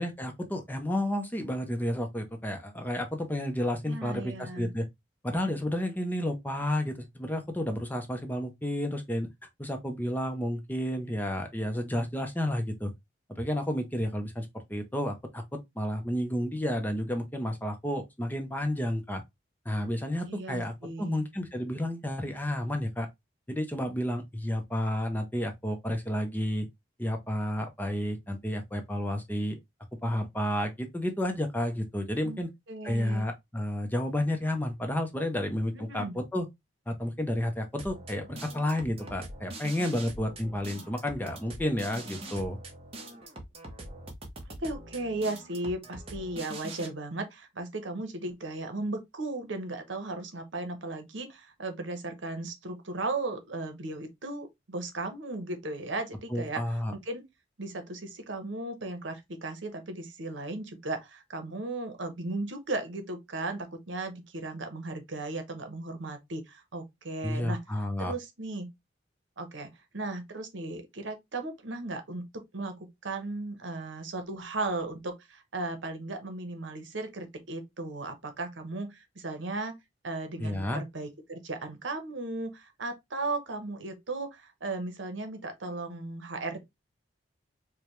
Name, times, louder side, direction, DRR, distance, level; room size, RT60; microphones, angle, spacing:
voice 1, 0.0-4.9 5.2-9.3 9.6-12.9 13.3-19.2 19.7-23.1 23.5-26.7 27.0-29.6 30.0-32.5 32.8-36.5 36.9-42.6 56.3-56.9 67.2-68.1 80.4-80.8, left 1 dB, 10° left, 0.6 m, -31 dB
voice 2, 3.9-4.7 20.3-21.2 32.2-32.4 32.7-33.2 35.7-36.2 44.5-56.6 56.9-57.2 57.6-67.6 68.0-68.7 69.4-79.8 80.0-86.6, right 2 dB, 80° right, 0.9 m, -36 dB
sound 1, 37.8-46.9, right 1 dB, 30° right, 0.8 m, -43 dB
4.9 x 2.2 x 3.0 m
head